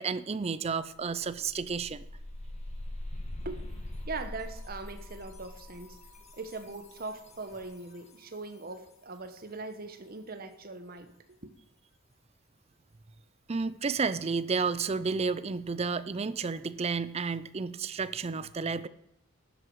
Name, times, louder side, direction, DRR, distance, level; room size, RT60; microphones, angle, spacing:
voice 1, 0.0-2.0 13.5-18.9, right 5 dB, 30° right, 0.5 m, -31 dB
sound 1, 0.6-0.7 1.0-7.8, left 1 dB, 30° left, 1.6 m, -42 dB
voice 2, 4.1-6.0 6.3-11.1, right 3 dB, 45° right, 1.1 m, -41 dB
12.0 x 8.0 x 4.7 m
head